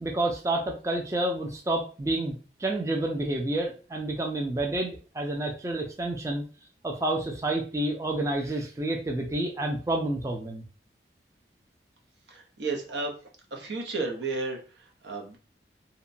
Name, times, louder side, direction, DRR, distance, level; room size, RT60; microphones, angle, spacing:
voice 1, 0.0-2.3 2.6-6.4 6.8-10.6, right 1 dB, 15° right, 1 dB, 0.3 m, -29 dB
voice 2, 12.3-13.1 13.5-15.4, right 3 dB, 80° right, 2 dB, 0.7 m, -33 dB
2.8 x 2.1 x 2.5 m, 0.36 s
head